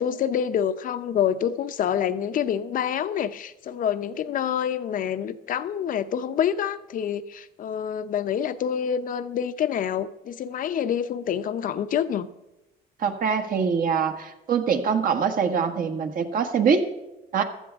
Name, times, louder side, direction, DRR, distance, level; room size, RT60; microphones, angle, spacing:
voice 1, 0.0-12.3, left 9 dB, 55° left, 11 dB, 0.7 m, -27 dB
voice 2, 13.0-16.9 17.3-17.4, right 6 dB, 55° right, 6 dB, 1.6 m, -23 dB
15.5 x 12.5 x 3.6 m, 0.96 s
cardioid pair, 110°, 17 cm